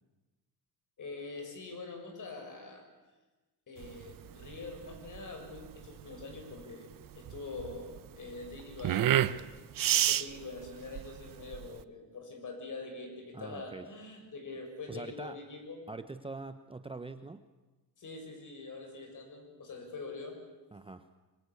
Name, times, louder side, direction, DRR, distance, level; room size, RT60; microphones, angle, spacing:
voice 1, 1.0-2.9 3.7-6.9 7.1-9.5 9.9-15.8 18.0-20.4, left 3 dB, 45° left, 4 dB, 6.8 m, -44 dB
sound 1, 3.8-11.8, right 11 dB, 50° right, 0.7 m, -31 dB
voice 2, 13.3-13.9 14.9-15.4 15.9-17.4 20.7-21.1, right 3 dB, 15° right, 9 dB, 0.8 m, -43 dB
25.5 x 22.5 x 8.5 m, 1.2 s
cardioid pair, 155°, 42 cm